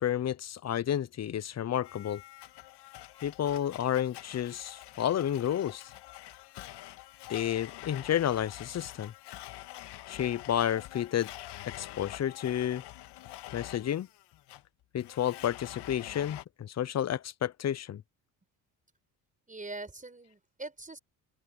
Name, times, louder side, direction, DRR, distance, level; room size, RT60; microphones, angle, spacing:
voice 1, 0.0-2.2 3.2-5.8 7.3-9.1 10.1-11.3 11.6-12.8 13.5-14.1 14.9-18.0, left 10 dB, 40° left, 0.8 m, -31 dB
Domestic sounds home sounds, 1.8-16.4, left 15 dB, 70° left, 2.1 m, -46 dB
voice 2, 19.5-21.0, right 2 dB, 20° right, 5.8 m, -42 dB
open air
supercardioid pair, 70°, 41 cm